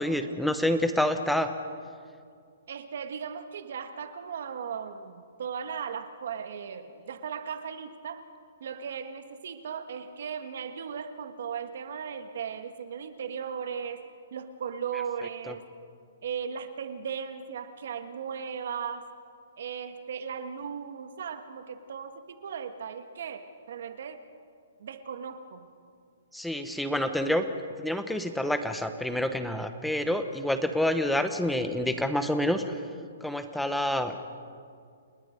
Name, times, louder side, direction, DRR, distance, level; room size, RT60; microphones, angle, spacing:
voice 1, 0.0-1.5 15.5-15.6 26.3-27.4 27.8-32.8 33.2-34.2, left 1 dB, ahead, 8 dB, 0.9 m, -28 dB
voice 2, 2.7-8.2 8.6-14.0 14.3-15.7 16.2-19.1 19.6-24.2 24.8-25.7, right 7 dB, 60° right, 9 dB, 1.7 m, -37 dB
29.5 x 19.5 x 5.3 m, 2.2 s
hypercardioid pair, 170°, 0 cm